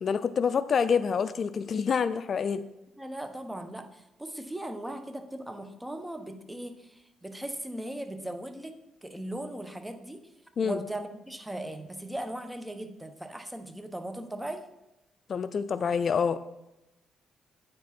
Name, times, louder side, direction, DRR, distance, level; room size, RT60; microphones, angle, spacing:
voice 1, 0.0-2.6 10.6-10.8 15.3-16.4, left 6 dB, 50° left, 13 dB, 0.4 m, -27 dB
voice 2, 3.0-8.7 9.0-10.2 10.6-14.7, right 1 dB, 10° right, 6 dB, 1.0 m, -38 dB
9.4 x 7.5 x 4.3 m, 0.91 s
cardioid pair, 90°, 0 cm